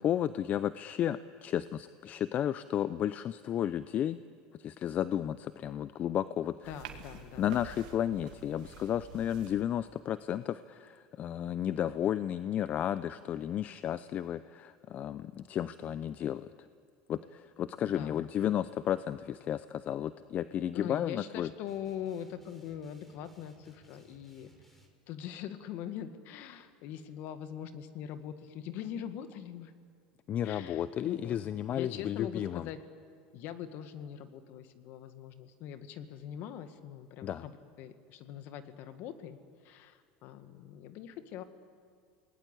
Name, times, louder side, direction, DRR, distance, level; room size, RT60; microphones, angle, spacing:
voice 1, 0.0-4.2 4.6-6.7 7.4-16.7 17.1-21.5 30.3-32.7 37.2-37.4, left 10 dB, 40° left, 14 dB, 0.6 m, -33 dB
sound 1, 6.6-9.6, right 9 dB, 75° right, 2.3 m, -48 dB
voice 2, 6.7-7.5 17.8-18.2 20.7-24.5 25.1-29.7 30.4-31.4 31.7-32.8 33.3-37.5 37.8-39.4 39.6-41.4, left 9 dB, 60° left, 10 dB, 1.9 m, -42 dB
sound 2, 21.7-24.9, right 2 dB, 5° left, 4.2 m, -62 dB
28.0 x 20.0 x 8.4 m, 2.1 s
supercardioid pair, 105°, 4 cm